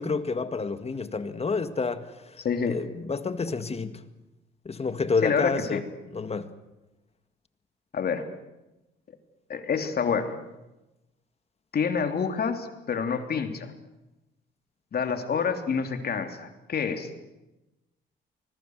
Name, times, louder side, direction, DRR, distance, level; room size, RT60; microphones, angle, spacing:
voice 1, 0.0-2.4 2.7-4.0 4.7-5.8 6.1-6.5, left 4 dB, 30° left, 1.9 m, -29 dB
voice 2, 2.4-2.8 5.2-5.8 7.9-8.2 9.5-10.4 11.7-13.7 14.9-17.1, left 6 dB, 50° left, 3.2 m, -27 dB
25.0 x 21.0 x 8.1 m
cardioid pair, 90°, 20 cm